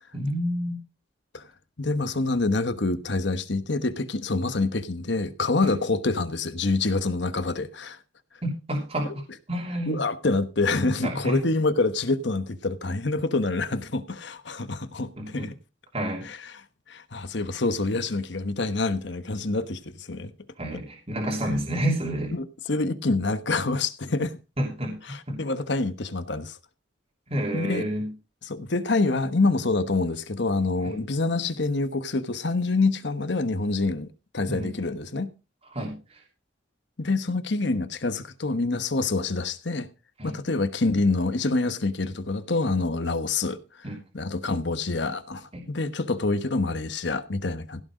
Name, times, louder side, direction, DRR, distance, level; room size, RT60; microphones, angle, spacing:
voice 1, 0.1-0.8 5.6-5.7 8.4-9.2 9.5-10.0 11.0-11.4 15.2-15.5 15.9-16.3 20.6-22.3 24.6-25.4 27.3-28.1 30.8-30.9 34.5-34.7 35.7-36.2 40.2-40.3 43.8-44.0 45.5-45.6, right 1 dB, 30° right, 3.1 m, -29 dB
voice 2, 1.8-8.0 9.9-15.5 16.2-16.6 16.9-20.3 20.7-20.8 22.3-24.3 25.1-26.6 27.5-27.9 28.4-35.3 37.0-39.9 40.2-43.6 44.1-47.8, left 3 dB, 60° left, 1.1 m, -26 dB
16.0 x 6.4 x 5.0 m
head